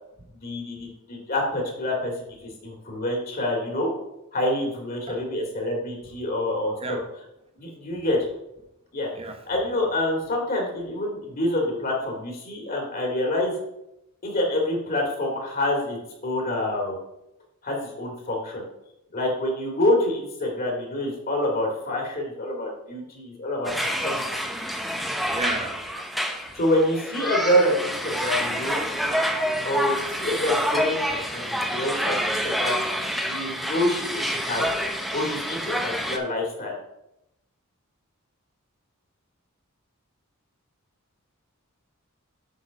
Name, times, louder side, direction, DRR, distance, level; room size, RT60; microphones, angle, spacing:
voice 1, 0.3-2.1 2.4-3.9 4.3-7.0 7.6-8.2 8.9-9.1 9.5-13.5 14.2-17.0 17.6-18.6 19.1-23.7 24.0-24.1 26.5-28.9 29.6-31.0 31.3-32.8 33.2-34.8 35.1-36.7, left 1 dB, 45° left, 2.3 m, -27 dB
sound 1, 23.6-36.2, equal, ahead, 0.8 m, -27 dB
voice 2, 25.3-25.8, right 3 dB, 25° right, 1.0 m, -33 dB
8.2 x 3.9 x 6.2 m
head